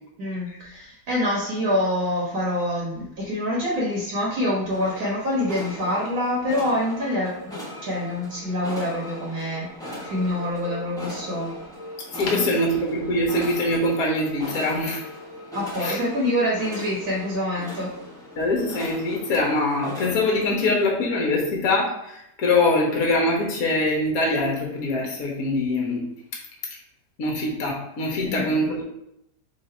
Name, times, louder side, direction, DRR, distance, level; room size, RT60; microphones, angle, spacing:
voice 1, 0.2-9.7 10.0-11.5 12.2-12.4 15.5-17.9 28.2-28.7, left 1 dB, 60° right, -5 dB, 1.5 m, -26 dB
sound 1, 4.7-20.7, left 1 dB, 5° left, 0.6 m, -39 dB
voice 2, 12.1-15.0 15.8-16.0 18.4-26.1 27.2-28.8, left 2 dB, 60° left, -2 dB, 1.4 m, -23 dB
3.8 x 2.7 x 4.3 m, 0.81 s
omnidirectional pair, 1.9 m